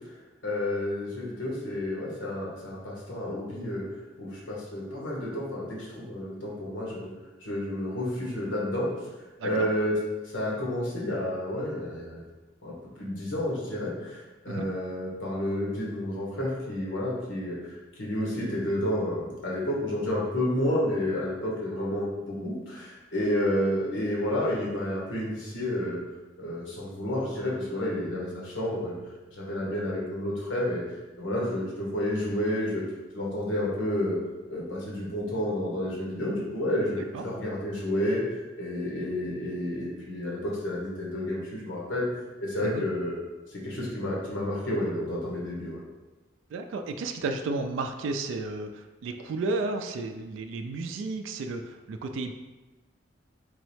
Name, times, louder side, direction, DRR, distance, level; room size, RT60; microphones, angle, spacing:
voice 1, 0.4-3.8 4.2-7.1 7.4-8.9 9.4-10.0 10.3-12.2 12.6-17.6 18.0-26.0 26.4-28.9 29.3-30.8 31.2-32.8 33.1-34.2 34.5-38.2 38.6-42.0 42.4-43.2 43.5-45.8, left 1 dB, 85° left, -4 dB, 1.2 m, -30 dB
voice 2, 46.5-52.3, right 3 dB, 80° right, 6 dB, 0.3 m, -33 dB
3.7 x 3.0 x 3.1 m, 1.2 s
head